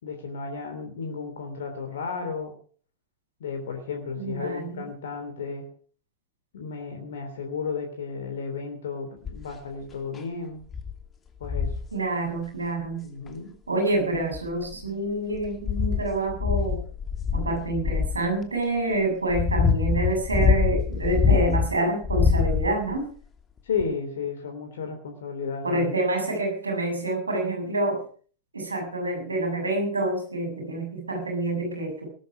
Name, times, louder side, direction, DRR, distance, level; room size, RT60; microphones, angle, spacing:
voice 1, 0.0-2.5 3.4-5.7 6.5-10.6 11.4-11.7 13.0-13.6 13.9-14.0 23.6-25.9, left 5 dB, 60° left, 5 dB, 3.1 m, -33 dB
voice 2, 4.2-4.9 11.9-13.0 13.7-16.8 17.3-23.1 25.6-28.1 28.5-32.1, right 2 dB, 80° right, 4 dB, 7.2 m, -27 dB
sound 1, 9.2-9.6 10.1-10.2 10.7-10.9 11.4-11.9 13.3-13.4 14.2-14.8 15.3-18.2 18.9-21.7 22.0-23.0 23.8-23.9, left 6 dB, 20° left, 2.6 m, -24 dB
19.0 x 13.0 x 4.9 m, 0.44 s
figure-of-eight pair, 90°, 0 cm